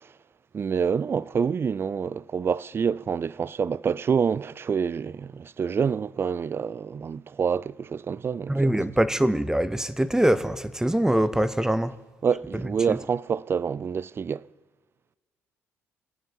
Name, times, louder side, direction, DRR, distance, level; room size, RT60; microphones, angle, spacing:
voice 1, 0.5-8.8 12.2-14.5, right 6 dB, 35° right, 0.4 m, -27 dB
voice 2, 8.5-11.9 12.9-13.0, right 1 dB, 10° right, 0.8 m, -23 dB
21.5 x 8.9 x 7.2 m
hypercardioid pair, 50°, 7 cm